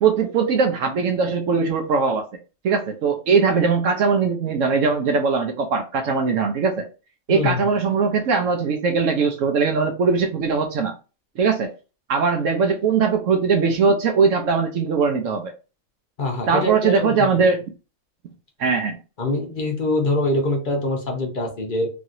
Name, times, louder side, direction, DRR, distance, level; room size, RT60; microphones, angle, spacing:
voice 1, 0.0-2.3 2.6-6.9 7.3-10.9 11.4-11.7 12.1-15.5 16.5-17.6 18.6-19.0, right 5 dB, 70° right, 0.9 m, -20 dB
voice 2, 7.3-7.7 16.2-17.3 19.2-21.9, left 1 dB, 45° left, 0.9 m, -24 dB
3.1 x 2.8 x 2.5 m
omnidirectional pair, 1.4 m